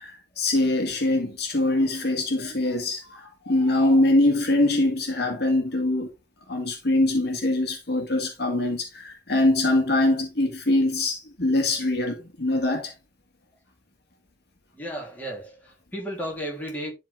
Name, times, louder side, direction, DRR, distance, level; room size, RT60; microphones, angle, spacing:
voice 1, 0.0-6.1 6.5-12.9, left 2 dB, 55° left, 2.0 m, -23 dB
voice 2, 14.7-16.9, equal, 10° left, 3.3 m, -34 dB
11.5 x 4.3 x 3.5 m
head